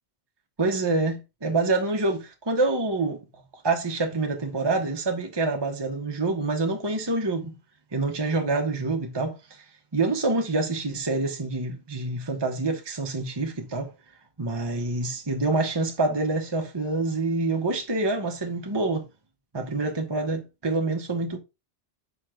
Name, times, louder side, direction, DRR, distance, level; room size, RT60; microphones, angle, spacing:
voice 1, 0.6-3.2 3.6-7.5 7.9-9.6 9.9-13.9 14.4-19.0 19.5-21.4, right 3 dB, 25° right, 1.0 m, -26 dB
5.7 x 4.8 x 3.7 m
omnidirectional pair, 1.1 m